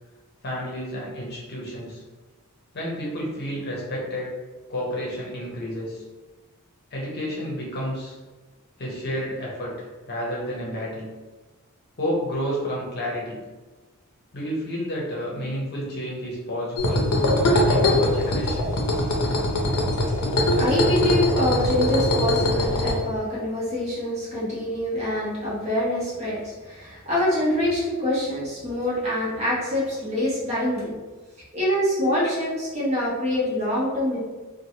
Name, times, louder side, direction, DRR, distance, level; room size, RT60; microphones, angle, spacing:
voice 1, 0.4-2.0 2.7-4.3 4.7-6.0 6.9-8.2 8.8-11.1 12.0-13.4 14.3-17.1 17.5-18.7, equal, 45° left, -4 dB, 0.8 m, -30 dB
sound 1, 16.8-22.9, left 1 dB, 85° left, 0.6 m, -22 dB
voice 2, 20.5-30.9 31.5-34.2, left 1 dB, 30° right, -8 dB, 1.0 m, -25 dB
3.0 x 2.2 x 2.7 m, 1.3 s
head